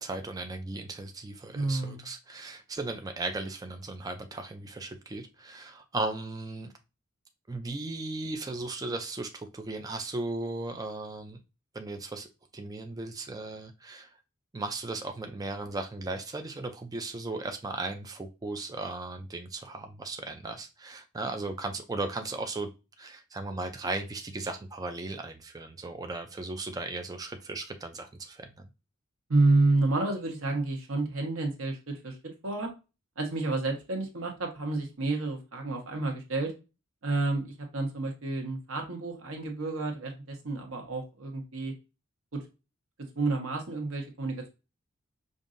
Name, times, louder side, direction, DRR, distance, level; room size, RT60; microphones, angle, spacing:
voice 1, 0.0-6.7 7.5-11.4 11.7-12.3 12.5-14.1 14.5-22.7 23.0-28.5, right 2 dB, 15° right, 6 dB, 0.4 m, -36 dB
voice 2, 1.5-2.0 29.3-32.2 32.4-32.7 33.2-36.5 37.0-41.7 42.3-42.4 43.1-44.5, right 2 dB, 75° right, 3 dB, 1.1 m, -29 dB
5.3 x 2.6 x 2.5 m, 0.28 s
head